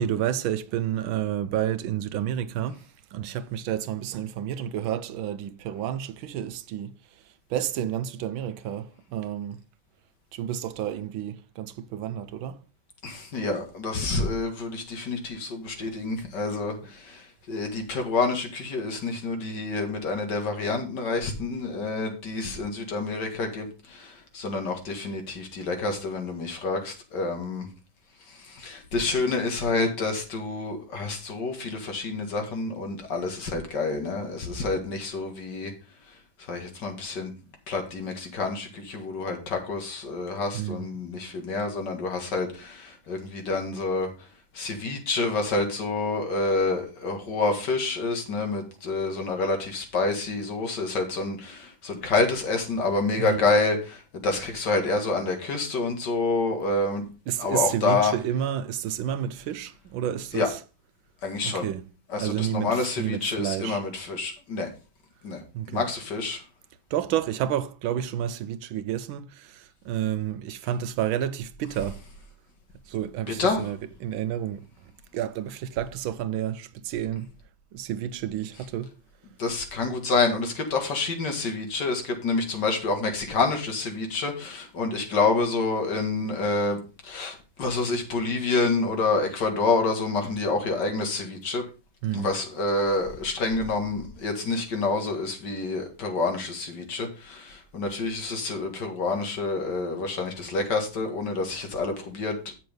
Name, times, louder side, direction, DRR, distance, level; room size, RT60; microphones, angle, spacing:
voice 1, 0.0-2.8 3.1-6.9 7.5-9.6 10.3-12.6 15.9-16.0 16.8-16.9 40.5-40.9 53.2-53.4 57.3-60.6 61.4-61.9 62.2-63.8 65.5-65.9 66.9-72.0 72.9-74.7 75.1-77.3 77.7-78.9 92.0-92.3, right 10 dB, 85° right, 1.5 m, -30 dB
voice 2, 13.0-27.7 28.5-35.7 36.5-37.3 37.7-44.1 44.5-57.1 57.4-58.1 60.3-60.5 61.2-61.7 62.1-64.7 65.2-66.4 73.4-73.6 79.4-91.6 92.1-102.4, left 3 dB, 60° left, 2.5 m, -28 dB
7.9 x 6.7 x 5.1 m
omnidirectional pair, 2.2 m